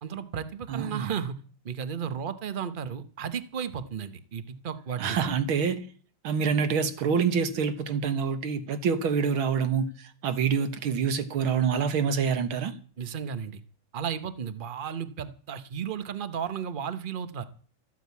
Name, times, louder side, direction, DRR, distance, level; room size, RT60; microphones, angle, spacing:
voice 1, 0.0-1.4 1.6-5.3 13.0-13.6 13.9-17.4, right 7 dB, 55° right, 0.5 m, -34 dB
voice 2, 0.7-1.2 5.0-5.8 6.2-12.8, right 6 dB, 70° right, 2.1 m, -26 dB
14.0 x 8.9 x 8.4 m
omnidirectional pair, 2.4 m